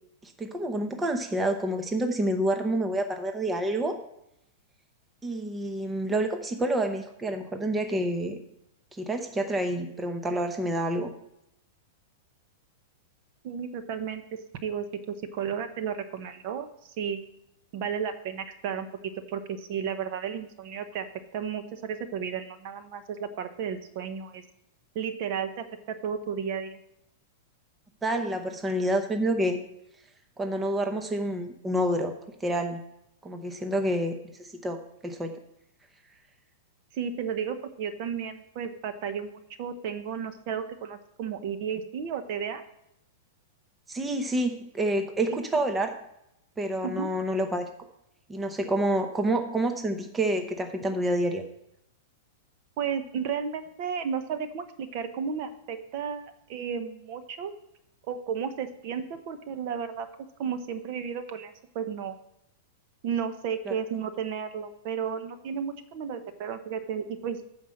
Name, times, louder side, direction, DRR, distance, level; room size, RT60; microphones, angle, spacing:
voice 1, 0.2-4.0 5.2-8.4 8.9-11.1 28.0-29.6 30.4-32.1 32.4-32.8 33.2-35.4 43.9-45.9 46.6-47.7 48.3-51.4 63.7-63.8, right 1 dB, 10° right, 6 dB, 0.7 m, -28 dB
voice 2, 13.4-17.2 17.7-18.9 19.3-21.1 21.3-24.4 24.9-26.8 36.9-42.6 46.8-47.1 52.8-57.5 58.0-60.1 60.4-62.1 63.0-67.4, right 7 dB, 45° right, 10 dB, 0.9 m, -33 dB
9.3 x 4.6 x 6.5 m, 0.83 s
supercardioid pair, 160°, 0 cm